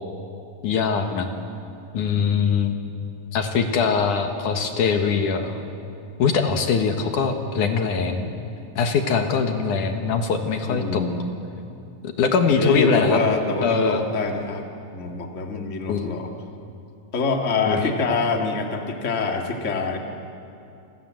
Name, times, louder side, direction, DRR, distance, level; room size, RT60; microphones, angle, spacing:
voice 1, 0.6-1.3 1.9-2.8 3.3-5.6 6.2-8.3 8.8-11.0 12.2-13.2 13.6-14.0 15.9-16.1 17.7-17.9, left 5 dB, 70° left, 5 dB, 2.9 m, -22 dB
voice 2, 10.7-11.2 12.5-14.7 14.9-16.3 17.1-20.0, left 4 dB, 25° left, 2 dB, 2.1 m, -25 dB
29.5 x 25.0 x 7.7 m, 2.7 s
omnidirectional pair, 3.9 m